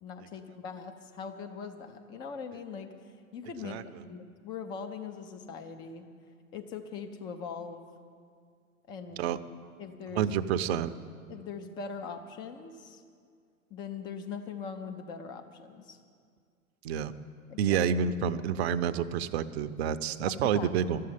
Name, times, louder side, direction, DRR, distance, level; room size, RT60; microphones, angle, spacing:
voice 1, 0.0-2.9 3.3-6.1 6.5-7.8 8.9-9.3 9.8-10.3 11.3-13.0 13.7-16.0 17.5-17.9 20.4-20.7, left 6 dB, 10° left, 7 dB, 0.3 m, -41 dB
voice 2, 10.1-10.9 16.8-17.1 17.6-21.0, right 8 dB, 50° right, 12 dB, 0.6 m, -28 dB
12.5 x 7.6 x 9.3 m, 2.2 s
figure-of-eight pair, 100°, 42 cm